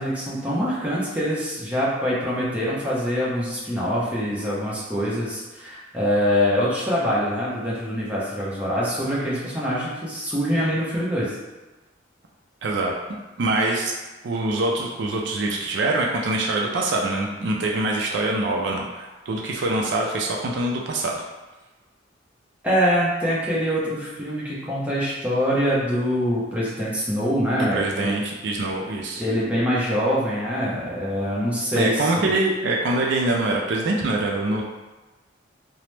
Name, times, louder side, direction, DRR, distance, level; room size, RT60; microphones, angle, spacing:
voice 1, 0.0-11.4 22.6-28.2 29.2-32.3, equal, 5° right, -8 dB, 0.6 m, -24 dB
voice 2, 12.6-12.9 13.4-13.9 14.2-21.2 27.7-29.2 31.8-34.6, right 2 dB, 65° right, -1 dB, 0.4 m, -24 dB
2.9 x 2.0 x 3.2 m, 1.2 s
head